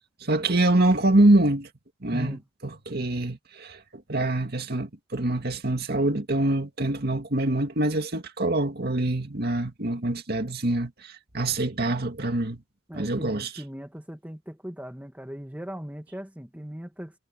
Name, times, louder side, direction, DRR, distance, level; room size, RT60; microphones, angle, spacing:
voice 1, 0.2-1.7 2.0-12.6 12.9-13.5, right 1 dB, 55° right, 2.2 m, -25 dB
voice 2, 12.9-17.1, equal, 10° right, 1.7 m, -38 dB
head